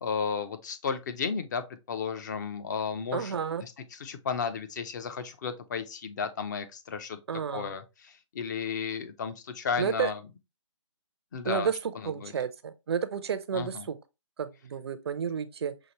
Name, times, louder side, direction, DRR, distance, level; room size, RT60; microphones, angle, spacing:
voice 1, 0.0-7.2 7.5-10.2 11.3-11.7 12.0-12.3 13.5-13.9, left 6 dB, 35° left, 0.6 m, -34 dB
voice 2, 3.1-3.6 7.3-7.7 9.8-10.1 11.4-11.7 12.0-13.9 14.4-15.7, right 7 dB, 55° right, 0.5 m, -31 dB
5.7 x 2.6 x 3.0 m
hypercardioid pair, 150°, 17 cm